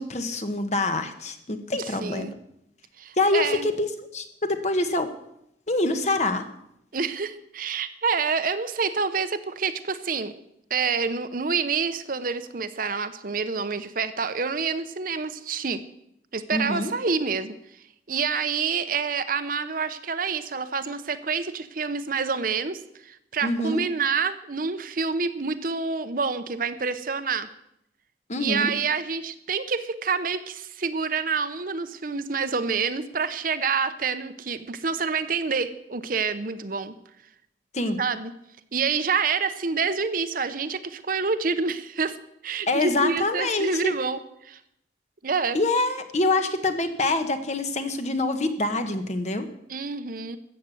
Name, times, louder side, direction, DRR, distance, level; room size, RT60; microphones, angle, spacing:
voice 1, 0.0-2.3 3.2-3.9 4.1-5.1 5.7-6.4 16.5-16.9 23.4-23.8 28.3-28.7 37.7-38.0 42.7-43.9 45.5-49.5, left 2 dB, 40° left, 8 dB, 1.3 m, -25 dB
voice 2, 1.8-2.3 3.0-3.7 6.9-10.3 10.7-15.8 16.3-17.6 18.1-27.5 28.4-36.9 38.0-38.3 38.7-42.2 42.4-44.6 45.2-45.6 49.7-50.4, right 5 dB, 50° right, 11 dB, 0.8 m, -27 dB
14.0 x 7.7 x 8.3 m, 0.78 s
head